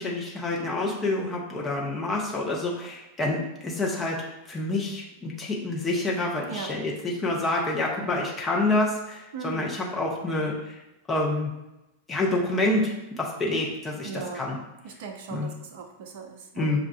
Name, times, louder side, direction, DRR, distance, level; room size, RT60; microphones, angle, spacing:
voice 1, 0.0-4.2 4.5-10.8 11.1-11.5 12.1-14.6 15.3-15.5 16.6-16.9, left 2 dB, 15° left, -3 dB, 0.7 m, -27 dB
voice 2, 9.3-9.7 14.0-14.5 14.8-16.7, right 5 dB, 55° right, 5 dB, 0.5 m, -38 dB
6.3 x 2.4 x 2.3 m, 0.95 s
figure-of-eight pair, 90°, 0 cm